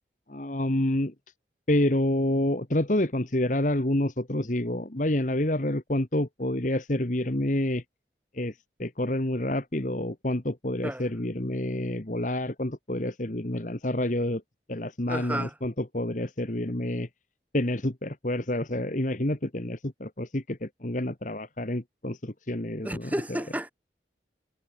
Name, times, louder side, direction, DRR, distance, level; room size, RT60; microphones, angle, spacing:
voice 1, 0.3-1.1 1.7-7.8 8.4-8.5 8.8-14.4 14.7-17.1 17.5-23.1, left 1 dB, 45° left, 1.6 m, -28 dB
voice 2, 15.1-15.6 22.8-23.7, right 1 dB, 10° right, 5.7 m, -32 dB
head